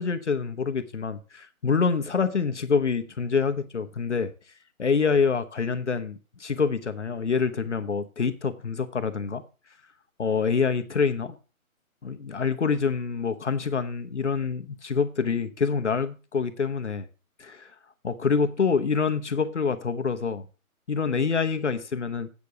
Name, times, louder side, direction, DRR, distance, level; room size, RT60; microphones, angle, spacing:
voice 1, 0.0-4.3 4.8-9.4 10.2-11.4 12.0-17.1 17.4-17.7 18.0-20.4 20.9-22.3, left 5 dB, 55° left, 1.0 m, -26 dB
8.4 x 6.8 x 6.6 m
hypercardioid pair, 175°, 43 cm